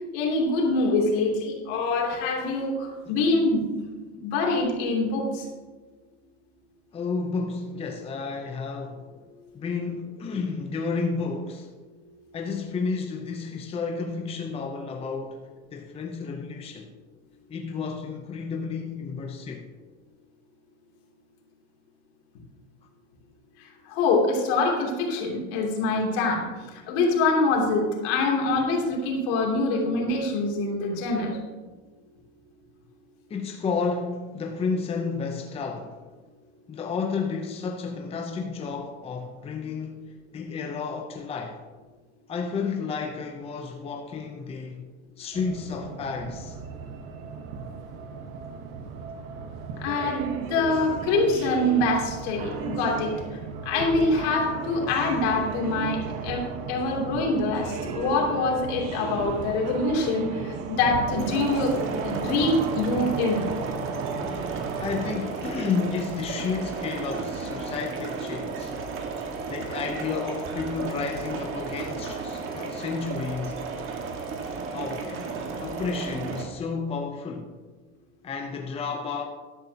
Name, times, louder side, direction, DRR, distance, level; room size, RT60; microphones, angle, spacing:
voice 1, 0.1-3.6 4.2-5.4 23.9-26.4 26.9-31.4 49.8-53.1 53.6-60.3 60.7-61.8 62.0-63.4, left 2 dB, 65° left, 3.1 m, -25 dB
voice 2, 6.9-9.0 9.5-11.7 12.3-15.4 15.7-16.9 17.5-19.6 33.3-36.0 36.7-40.0 40.3-41.6 42.3-44.8 45.2-46.6 64.8-68.8 69.5-73.6 74.7-75.2 75.6-77.5 78.2-79.2, left 5 dB, 15° left, 0.7 m, -31 dB
sound 1, 45.3-65.1, right 5 dB, 60° right, 1.4 m, -35 dB
sound 2, 61.1-76.4, right 4 dB, 35° right, 1.7 m, -34 dB
13.5 x 11.5 x 2.9 m
supercardioid pair, 135°, 34 cm